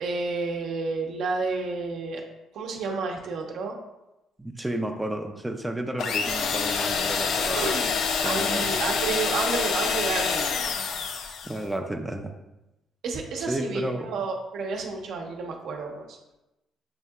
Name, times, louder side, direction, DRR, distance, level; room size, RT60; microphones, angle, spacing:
voice 1, 0.0-2.2 2.5-3.7 7.5-7.9 8.2-10.5 13.0-16.2, right 4 dB, 75° right, 1 dB, 0.7 m, -30 dB
voice 2, 4.4-7.7 8.2-8.7 11.4-12.3 13.4-14.1, right 1 dB, 10° right, 3 dB, 0.4 m, -32 dB
sound 1, 6.0-11.6, left 5 dB, 70° left, 0.4 m, -27 dB
6.6 x 2.7 x 2.3 m, 0.94 s
cardioid pair, 110°, 0 cm